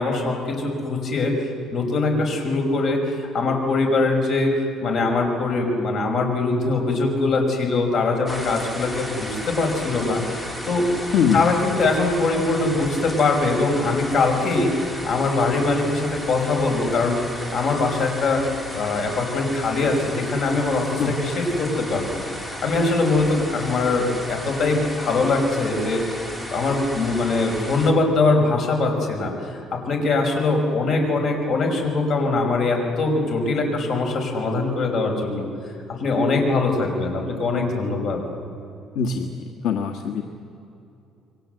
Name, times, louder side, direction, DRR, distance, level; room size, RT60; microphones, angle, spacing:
voice 1, 0.0-1.3 1.7-4.5 4.8-10.9 11.3-18.4 18.7-35.5 36.0-38.2, left 3 dB, 50° left, 2 dB, 5.3 m, -22 dB
sound 1, 8.3-27.9, equal, 10° left, 3.1 m, -34 dB
voice 2, 38.9-39.3 39.6-40.2, left 7 dB, 75° left, 3 dB, 1.6 m, -22 dB
28.5 x 23.0 x 7.9 m, 2.8 s
cardioid pair, 160°, 0 cm